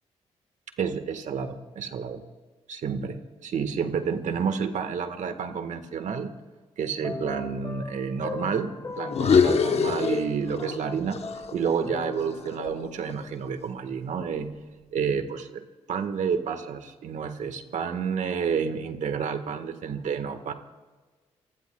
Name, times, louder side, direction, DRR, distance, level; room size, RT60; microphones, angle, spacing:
voice 1, 0.8-2.2 2.7-6.3 6.8-11.2 11.5-14.5 14.9-20.5, right 6 dB, 70° right, 8 dB, 1.5 m, -30 dB
sound 1, 7.0-13.4, left 3 dB, 25° left, 1.9 m, -39 dB
sound 2, 9.1-10.8 11.1-13.3, left 6 dB, 55° left, 1.0 m, -25 dB
30.0 x 16.5 x 2.3 m, 1.3 s
cardioid pair, 65°, 13 cm